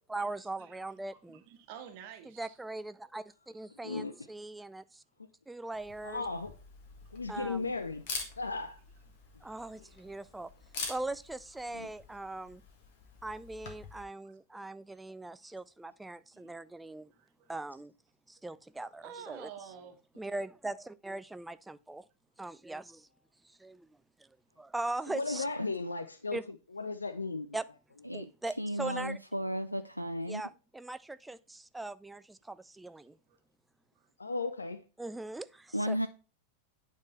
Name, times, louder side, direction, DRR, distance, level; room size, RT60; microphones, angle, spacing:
voice 1, 0.1-1.4 2.3-5.0 5.5-6.2 7.3-7.7 9.4-10.5 10.9-12.6 13.2-17.1 17.5-17.9 18.3-19.5 20.2-22.1 22.4-23.1 23.4-23.9 24.2-24.3 24.6-25.4 26.3-26.4 27.5-27.6 28.1-29.2 30.3-33.2 35.0-36.0, right 2 dB, 5° right, 0.3 m, -40 dB
voice 2, 1.1-2.5 9.4-9.5 9.8-10.0 14.2-14.4 15.4-15.5 16.3-16.5 17.1-17.5 19.0-20.0 33.3-33.4 34.0-34.1, right 8 dB, 45° right, 1.0 m, -49 dB
voice 3, 3.8-4.1 6.0-6.5 7.1-8.0 8.4-8.8 11.7-11.9 25.1-26.4 26.7-27.6 28.1-28.2 34.2-34.8, left 3 dB, 75° left, 0.4 m, -36 dB
Camera, 5.7-14.0, left 4 dB, 50° left, 1.5 m, -46 dB
voice 4, 28.6-30.4 35.7-36.1, equal, 90° right, 0.3 m, -34 dB
8.7 x 3.7 x 4.2 m
figure-of-eight pair, 90°, 0 cm